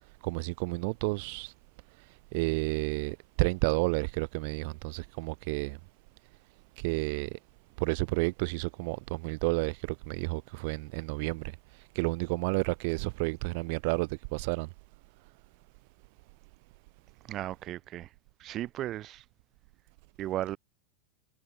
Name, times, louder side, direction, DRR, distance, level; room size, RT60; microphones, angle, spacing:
voice 1, 0.2-1.5 2.3-5.8 6.8-7.3 7.8-11.5 11.9-14.7, right 29 dB, 45° right, 0.7 m, -31 dB
voice 2, 17.3-18.1 18.4-19.2 20.2-20.6, right 13 dB, 25° right, 1.2 m, -35 dB
supercardioid pair, 175°, 0 cm